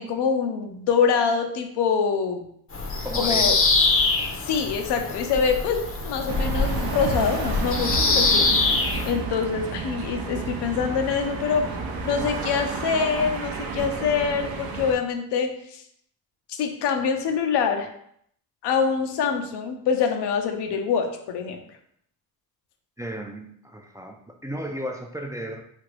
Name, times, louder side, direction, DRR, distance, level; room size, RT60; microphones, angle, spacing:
voice 1, 0.0-2.4 3.2-3.6 4.4-8.5 9.0-11.6 12.0-15.8 16.6-17.9 18.6-21.6, left 6 dB, 75° left, 5 dB, 0.6 m, -25 dB
Bird vocalization bird call bird song, 2.7-9.1, left 3 dB, 35° left, 0.6 m, -24 dB
voice 2, 3.0-3.6 23.0-25.6, equal, 10° right, 3 dB, 0.4 m, -34 dB
sound 1, 6.3-14.9, right 4 dB, 60° right, 0.6 m, -31 dB
2.8 x 2.5 x 3.2 m, 0.69 s
supercardioid pair, 45°, 41 cm